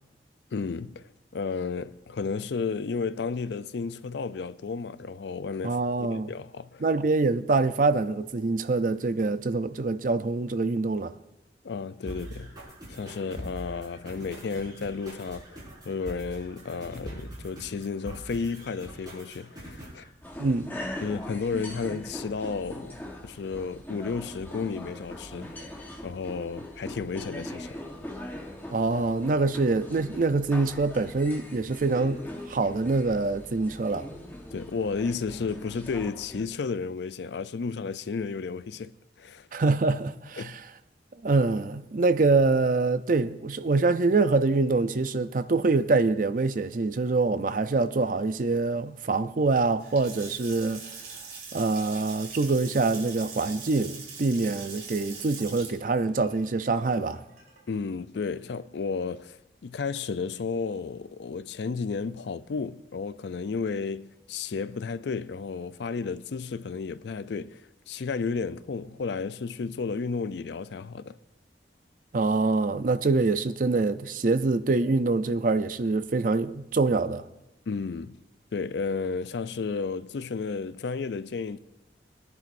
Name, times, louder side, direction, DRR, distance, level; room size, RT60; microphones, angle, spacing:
voice 1, 0.5-5.8 6.1-6.8 11.6-12.5 12.9-15.6 15.8-20.1 21.0-23.0 23.2-25.7 26.0-27.7 34.5-38.9 39.2-39.5 40.4-40.6 57.7-67.6 67.9-71.2 77.7-78.2 78.5-81.6, left 5 dB, 75° left, 0.4 m, -32 dB
voice 2, 5.6-6.3 6.8-11.1 20.4-20.7 28.7-32.2 32.5-34.1 39.5-40.5 41.2-50.8 51.5-57.2 72.1-77.2, right 3 dB, 50° right, 0.5 m, -25 dB
sound 1, 12.1-20.0, equal, 25° right, 5.2 m, -43 dB
sound 2, 20.2-36.4, left 1 dB, 10° left, 1.2 m, -41 dB
Water tap faucet / Sink (filling or washing) / Splash splatter, 49.7-57.8, right 5 dB, 65° right, 3.5 m, -43 dB
21.5 x 10.5 x 2.6 m
head